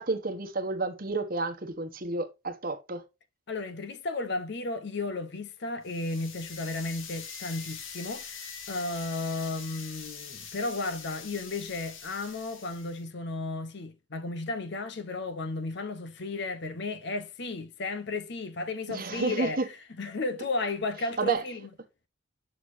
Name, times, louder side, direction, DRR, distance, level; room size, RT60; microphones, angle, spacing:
voice 1, 0.0-3.0 18.9-19.7 21.2-21.4, right 3 dB, 45° right, 1.1 m, -30 dB
voice 2, 3.5-21.7, left 3 dB, 55° left, 0.8 m, -34 dB
sound 1, 5.8-13.0, left 6 dB, 75° left, 1.4 m, -43 dB
6.6 x 6.5 x 2.6 m
head